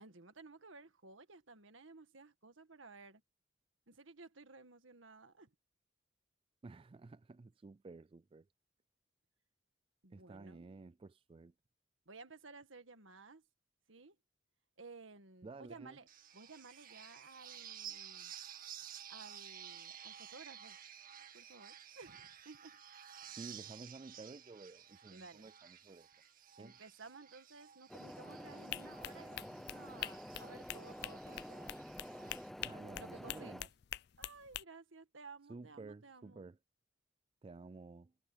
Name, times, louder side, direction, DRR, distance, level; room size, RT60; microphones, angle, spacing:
voice 1, 0.0-3.2 3.9-5.5 10.0-10.6 12.0-13.4 13.9-14.1 14.8-16.1 16.3-18.3 19.1-20.8 21.3-22.8 23.6-23.7 25.1-25.5 26.6-31.7 33.0-33.7 34.2-36.5, right 4 dB, 85° right, 1.8 m, -56 dB
voice 2, 6.6-8.5 10.1-11.5 15.4-16.0 23.3-26.1 26.5-26.8 32.6-33.7 35.5-36.6 37.4-38.1, right 3 dB, 30° right, 0.3 m, -52 dB
sound 1, 16.1-32.5, right 9 dB, 45° right, 2.1 m, -53 dB
sound 2, 27.9-33.6, equal, ahead, 0.7 m, -49 dB
sound 3, 28.7-34.6, left 13 dB, 55° left, 0.4 m, -45 dB
head